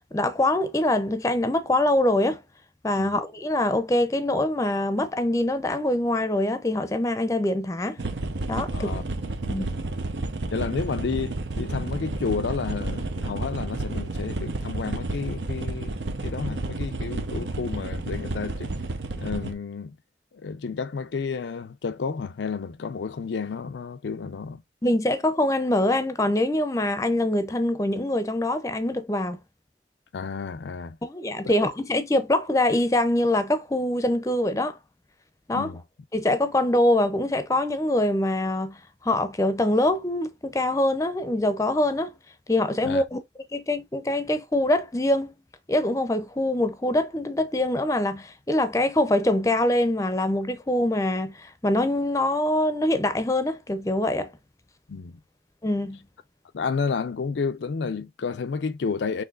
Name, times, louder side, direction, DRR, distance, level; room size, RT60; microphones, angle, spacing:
voice 1, 0.1-2.4 2.8-8.0 8.5-8.9 9.5-9.7 24.8-29.4 31.0-34.8 35.5-35.7 36.1-38.8 39.0-42.1 42.5-43.2 43.5-45.3 45.7-54.3 55.6-56.0, left 1 dB, 20° left, 0.5 m, -24 dB
sound 1, 8.0-19.5, right 2 dB, 90° right, 0.8 m, -31 dB
voice 2, 8.7-9.0 10.5-16.0 16.2-18.7 19.2-20.0 20.4-24.6 30.1-31.0 35.5-35.8 42.8-43.0 54.9-55.2 56.5-59.2, left 5 dB, 85° left, 0.4 m, -31 dB
5.9 x 3.1 x 2.4 m
head